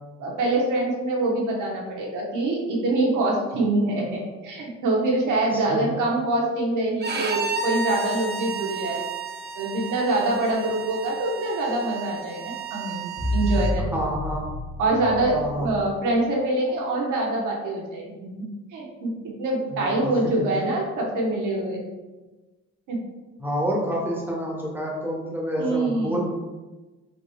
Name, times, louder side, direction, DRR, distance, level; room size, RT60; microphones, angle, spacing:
voice 1, 0.2-9.0 9.5-14.1 14.8-19.1 19.4-21.8 22.9-23.0 25.6-26.2, right 2 dB, 80° right, -2 dB, 1.2 m, -25 dB
voice 2, 5.5-5.8 13.9-14.4 15.3-15.7 19.7-20.1 20.4-20.5 23.4-26.2, equal, 5° right, -3 dB, 1.3 m, -28 dB
Bowed string instrument, 7.0-13.7, right 5 dB, 35° right, 0.6 m, -32 dB
sound 1, 13.2-16.3, left 1 dB, 45° left, 1.5 m, -29 dB
5.7 x 3.1 x 2.3 m, 1.2 s
cardioid pair, 90°, 30 cm